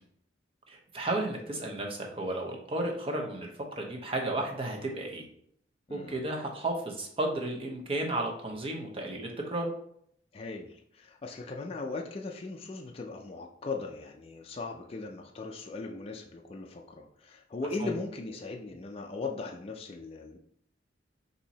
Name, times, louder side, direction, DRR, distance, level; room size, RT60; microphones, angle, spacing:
voice 1, 0.7-5.2 5.9-9.7 17.8-17.9, right 2 dB, 30° right, 1 dB, 0.8 m, -33 dB
voice 2, 10.3-20.4, left 3 dB, 30° left, 1 dB, 0.4 m, -38 dB
4.4 x 2.7 x 4.0 m, 0.67 s
head